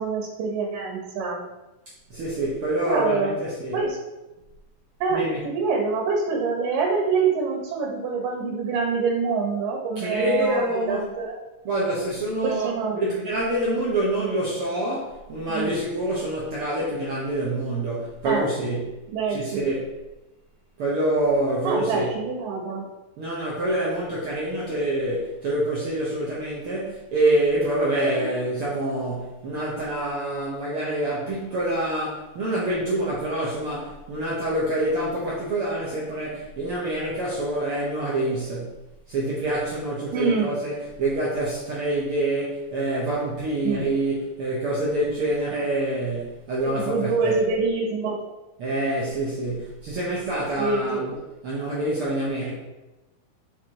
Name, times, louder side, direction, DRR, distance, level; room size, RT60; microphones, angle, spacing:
voice 1, 0.0-1.4 2.9-3.4 3.7-4.0 5.0-11.4 12.4-13.0 15.5-15.7 18.2-18.5 19.1-19.7 21.6-22.9 40.1-40.5 43.6-43.8 46.6-48.2 50.6-51.2, right 4 dB, 85° right, 0 dB, 2.7 m, -26 dB
voice 2, 2.1-3.8 5.1-5.4 10.0-11.1 11.6-19.9 20.8-22.1 23.2-38.8 39.1-47.4 48.6-51.2 51.4-52.5, right 1 dB, 65° right, -5 dB, 1.3 m, -26 dB
5.9 x 3.8 x 4.6 m, 1.0 s
omnidirectional pair, 3.7 m